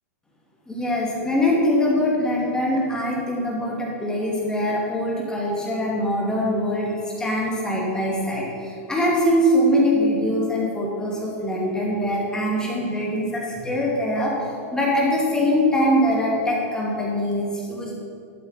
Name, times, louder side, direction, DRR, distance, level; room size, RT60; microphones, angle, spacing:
voice 1, 0.7-6.9 7.2-17.9, equal, 10° left, -3 dB, 2.4 m, -23 dB
11.5 x 8.0 x 4.3 m, 2.4 s
hypercardioid pair, 130°, 8 cm